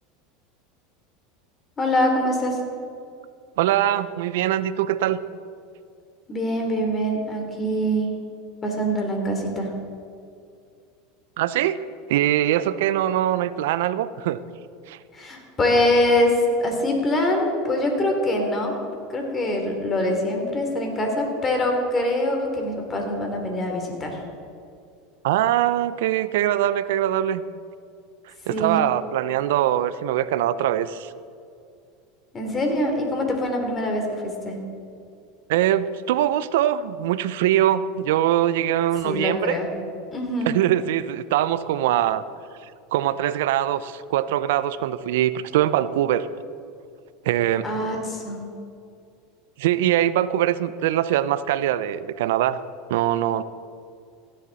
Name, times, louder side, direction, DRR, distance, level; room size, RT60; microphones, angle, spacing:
voice 1, 1.8-2.6 6.3-8.2 8.6-9.7 15.1-18.7 19.1-24.2 28.5-28.8 32.3-34.6 39.0-39.7 40.1-40.5 47.6-48.4, left 1 dB, 25° left, 2 dB, 3.1 m, -24 dB
voice 2, 3.6-5.2 11.4-11.8 12.1-14.4 14.9-15.0 25.2-27.4 28.5-31.1 35.5-39.6 40.4-42.2 42.6-46.3 47.2-47.7 49.6-52.6 52.9-53.4, right 12 dB, 75° right, 15 dB, 0.5 m, -22 dB
16.0 x 10.0 x 4.1 m, 2.4 s
hypercardioid pair, 100°, 0 cm